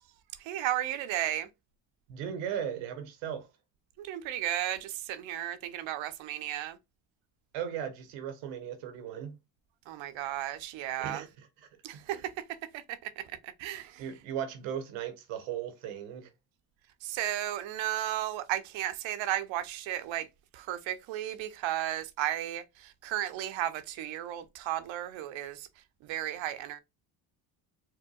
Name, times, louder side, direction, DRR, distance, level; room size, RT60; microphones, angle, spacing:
voice 1, 0.4-1.5 4.0-6.8 9.9-11.2 11.8-12.3 12.7-14.1 17.0-20.3 20.5-25.7 26.0-26.8, right 12 dB, 70° right, 0.7 m, -34 dB
voice 2, 2.1-3.5 7.5-9.4 11.0-12.2 14.0-16.3, right 9 dB, 90° right, 1.0 m, -37 dB
4.4 x 2.2 x 2.3 m
supercardioid pair, 75°, 48 cm